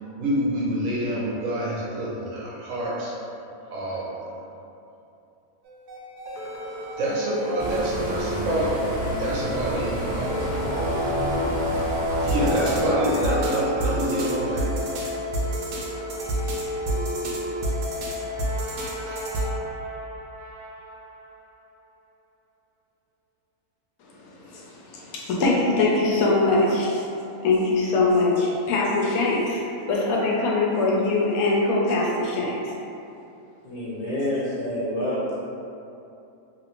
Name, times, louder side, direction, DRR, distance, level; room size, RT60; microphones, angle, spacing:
voice 1, 0.0-3.1 3.7-4.3 7.0-8.8 9.2-10.6 11.0-11.1 12.1-14.7, right 1 dB, 70° right, -6 dB, 0.9 m, -27 dB
sound 1, 5.7-19.4, equal, 90° right, 1.1 m, -30 dB
sound 2, 7.6-12.9, right 1 dB, 15° right, 0.6 m, -31 dB
sound 3, 10.2-14.8 18.2-21.1, left 1 dB, 5° left, 1.0 m, -30 dB
voice 2, 24.1-27.0 27.4-29.6 29.9-32.7, left 2 dB, 75° left, -4 dB, 1.0 m, -22 dB
voice 3, 33.6-35.4, left 1 dB, 60° left, -8 dB, 0.9 m, -27 dB
3.0 x 2.5 x 2.9 m, 2.7 s
omnidirectional pair, 1.6 m